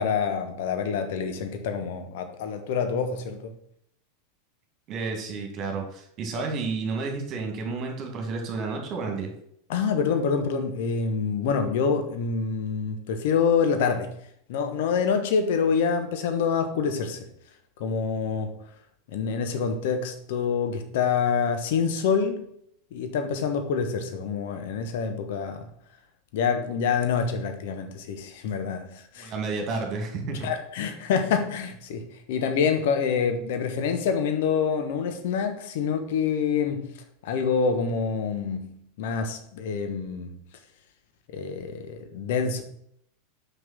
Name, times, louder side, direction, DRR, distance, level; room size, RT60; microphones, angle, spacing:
voice 1, 0.0-3.5 9.7-14.1 14.5-17.3 17.8-18.5 19.1-22.4 22.9-25.7 26.3-29.3 30.4-36.9 37.2-40.4 41.3-42.6, left 6 dB, 55° left, 6 dB, 1.2 m, -26 dB
voice 2, 4.9-9.3 29.2-30.5, right 4 dB, 35° right, 3 dB, 2.3 m, -31 dB
6.2 x 5.7 x 6.0 m, 0.70 s
figure-of-eight pair, 85°, 0 cm